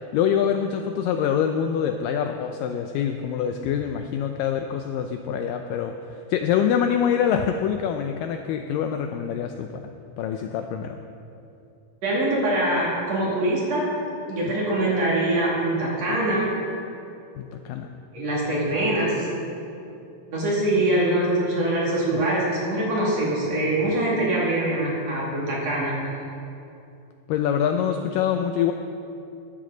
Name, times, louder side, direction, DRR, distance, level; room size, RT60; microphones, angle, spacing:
voice 1, 0.1-9.9 10.2-11.0 17.4-17.9 22.1-22.2 27.3-28.7, left 8 dB, 90° left, 6 dB, 1.9 m, -25 dB
voice 2, 12.0-13.9 14.3-16.6 18.1-19.3 20.3-25.9, right 1 dB, 45° right, -5 dB, 3.2 m, -23 dB
14.5 x 12.5 x 3.9 m, 2.7 s
omnidirectional pair, 4.5 m